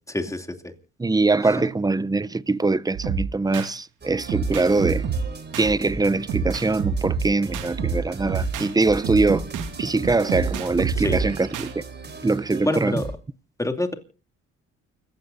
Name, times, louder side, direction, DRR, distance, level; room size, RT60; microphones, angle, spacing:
voice 1, 0.1-0.7 1.4-1.6 11.0-11.2 12.6-13.1 13.6-13.9, left 2 dB, 10° left, 2.7 m, -27 dB
voice 2, 1.0-5.1 5.6-9.5 9.8-11.8 12.2-13.0, right 3 dB, 15° right, 0.7 m, -22 dB
sound 1, 2.9-3.7 4.3-5.7 6.3-8.7 9.0-11.7, right 6 dB, 90° right, 2.3 m, -28 dB
sound 2, 4.0-13.1, right 3 dB, 35° right, 3.8 m, -38 dB
29.5 x 15.5 x 2.7 m
cardioid pair, 90°, 30 cm